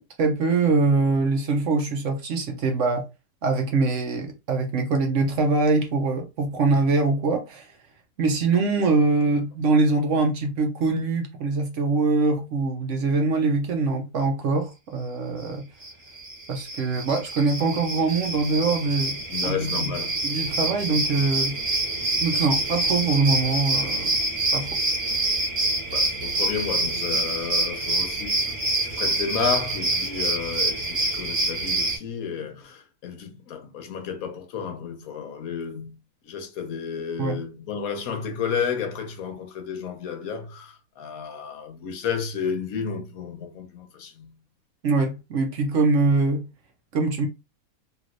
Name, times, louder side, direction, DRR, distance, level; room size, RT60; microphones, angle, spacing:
voice 1, 0.0-3.1 3.4-7.7 8.2-15.6 16.5-19.2 19.4-19.9 20.2-21.6 22.2-24.1 24.5-24.8 37.2-37.4 44.8-46.5 46.9-47.3, right 3 dB, 65° right, 0.8 m, -23 dB
sound 1, 15.8-15.9 16.2-32.0, right 2 dB, 45° right, 1.3 m, -26 dB
voice 2, 19.3-20.2 25.9-35.9 36.2-44.3, left 6 dB, 70° left, 1.1 m, -32 dB
3.1 x 2.8 x 2.5 m
omnidirectional pair, 1.6 m